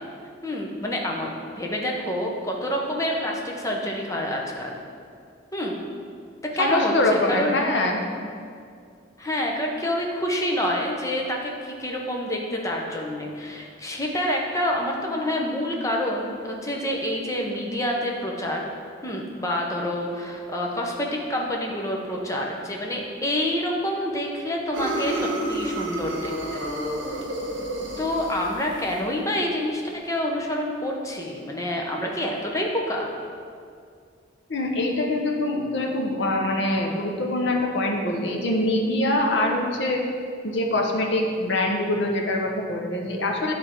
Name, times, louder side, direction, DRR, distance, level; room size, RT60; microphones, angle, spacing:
voice 1, 0.4-4.8 5.5-5.8 6.6-7.6 9.2-18.6 19.0-26.6 28.0-33.1, left 1 dB, 15° left, 0 dB, 0.7 m, -27 dB
voice 2, 6.6-8.0 34.5-40.0 40.4-43.5, left 1 dB, 65° left, 1 dB, 0.8 m, -24 dB
sound 1, 24.7-29.0, right 1 dB, 75° right, 1.1 m, -30 dB
9.8 x 3.4 x 4.4 m, 2.3 s
head